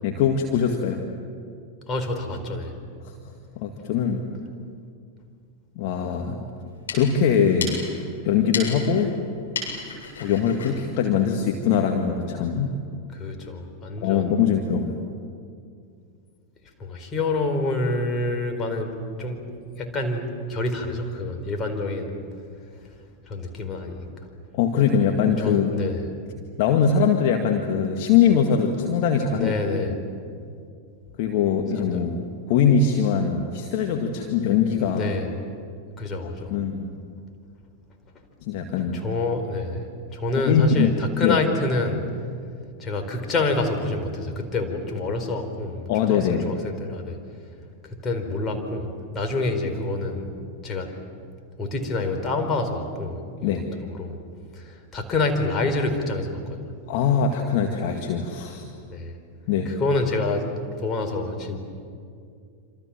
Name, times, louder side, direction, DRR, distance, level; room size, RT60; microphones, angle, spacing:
voice 1, 0.0-1.0 3.6-4.2 5.8-6.4 6.9-7.8 8.2-9.1 10.2-12.8 14.0-15.0 24.6-25.8 26.6-29.5 31.2-32.2 32.5-35.1 36.2-36.9 38.4-39.0 40.4-40.9 41.2-41.4 45.9-46.5 53.4-53.7 56.9-58.7 59.5-59.7, left 7 dB, 45° left, 2 dB, 2.0 m, -22 dB
voice 2, 1.9-2.8 13.1-14.3 16.8-19.4 19.8-22.2 23.3-24.1 25.2-26.0 29.3-29.9 31.8-32.0 34.8-35.3 36.0-36.5 38.9-39.8 40.1-42.0 42.8-47.2 47.9-48.9 49.1-50.3 50.6-50.9 51.6-54.2 54.5-56.8 58.9-59.1 59.6-60.5 60.8-61.6, left 2 dB, 25° left, 4 dB, 4.5 m, -27 dB
sound 1, 6.6-11.9, left 4 dB, 70° left, 7.8 m, -35 dB
27.0 x 27.0 x 7.6 m, 2.3 s
figure-of-eight pair, 90°, 0 cm